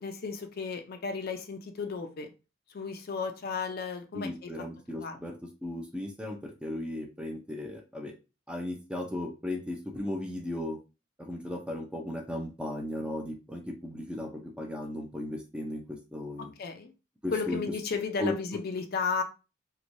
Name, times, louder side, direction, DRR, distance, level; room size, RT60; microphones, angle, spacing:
voice 1, 0.0-2.3 2.7-4.5 4.9-5.4 16.4-16.9 17.3-19.2, left 5 dB, 50° left, 6 dB, 0.4 m, -34 dB
voice 2, 4.1-5.3 5.6-8.1 8.5-10.8 11.2-16.5 17.2-17.6 18.2-18.3, left 1 dB, 5° right, 2 dB, 0.5 m, -36 dB
3.0 x 2.2 x 2.6 m, 0.30 s
head